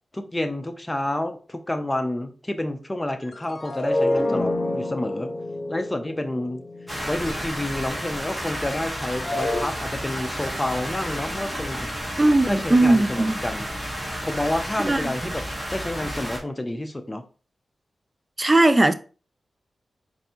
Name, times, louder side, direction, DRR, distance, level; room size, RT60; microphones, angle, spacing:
voice 1, 0.1-5.3 5.7-6.6 7.1-11.9 12.4-13.7 14.2-15.4 15.7-17.2, left 1 dB, 20° left, 0.6 m, -29 dB
sound 1, 3.2-7.5 8.5-9.6, left 1 dB, 50° left, 0.8 m, -28 dB
sound 2, 6.9-16.4, equal, 5° right, 1.2 m, -32 dB
voice 2, 12.2-13.4 14.8-15.3 18.4-18.9, right 2 dB, 25° right, 0.4 m, -19 dB
4.5 x 2.6 x 2.9 m
cardioid pair, 65°, 0 cm